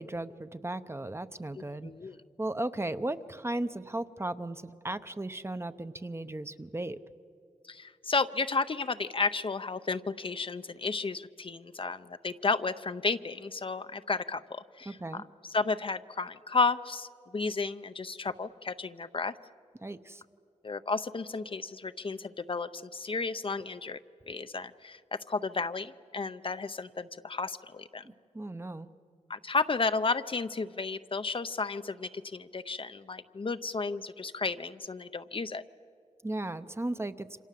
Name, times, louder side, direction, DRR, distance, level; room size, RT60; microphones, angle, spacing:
voice 1, 0.0-1.9 2.4-7.0 14.9-15.2 19.8-20.2 28.3-28.9 36.2-37.3, right 1 dB, 20° right, 11 dB, 0.7 m, -36 dB
voice 2, 1.6-2.2 7.6-19.3 20.6-24.0 24.3-28.1 29.3-35.6, left 4 dB, 45° left, 12 dB, 0.6 m, -33 dB
28.0 x 26.0 x 7.5 m, 2.4 s
wide cardioid pair, 100°, 13 cm